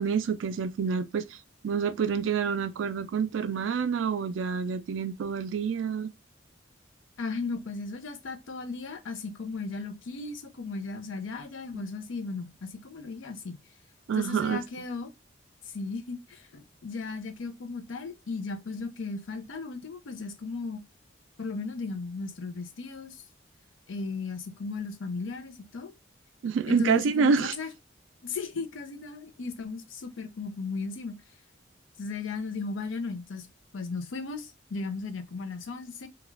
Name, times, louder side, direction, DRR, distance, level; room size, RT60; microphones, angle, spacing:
voice 1, 0.0-1.4 1.6-6.1 11.7-11.8 14.1-14.6 26.4-27.5, right 6 dB, 80° right, 0.3 m, -27 dB
voice 2, 7.2-13.6 14.1-15.1 15.7-20.8 21.4-23.2 23.9-25.9 26.7-27.7 28.2-31.1 32.0-33.5 33.7-36.1, left 4 dB, 90° left, 0.5 m, -36 dB
2.3 x 2.3 x 3.1 m
head